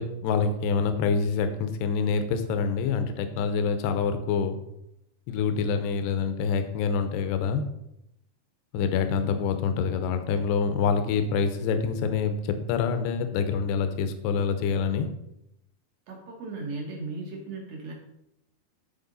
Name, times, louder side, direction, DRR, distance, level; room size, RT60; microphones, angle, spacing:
voice 1, 0.0-4.6 5.3-7.6 8.7-15.1, left 5 dB, 80° left, 8 dB, 2.7 m, -26 dB
voice 2, 16.1-17.9, right 3 dB, 70° right, -1 dB, 1.5 m, -36 dB
13.0 x 4.3 x 4.0 m, 0.83 s
omnidirectional pair, 5.0 m